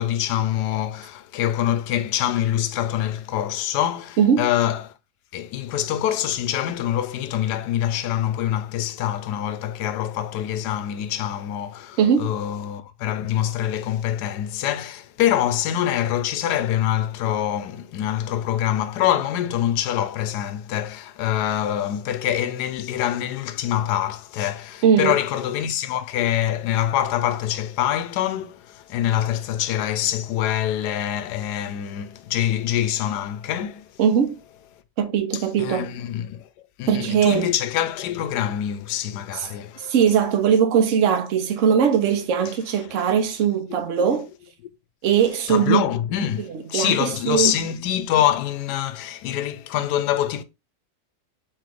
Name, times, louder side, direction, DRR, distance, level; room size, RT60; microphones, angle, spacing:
voice 1, 0.0-4.9 5.3-34.0 35.3-36.5 36.8-39.9 45.5-50.4, left 11 dB, 80° left, 1.1 m, -25 dB
voice 2, 4.2-4.5 12.0-12.3 24.8-25.2 34.0-34.4 35.0-35.9 36.9-37.5 39.3-39.5 39.8-44.3 45.0-45.8 46.7-47.5, right 7 dB, 55° right, 1.0 m, -20 dB
4.4 x 3.2 x 3.8 m
omnidirectional pair, 1.8 m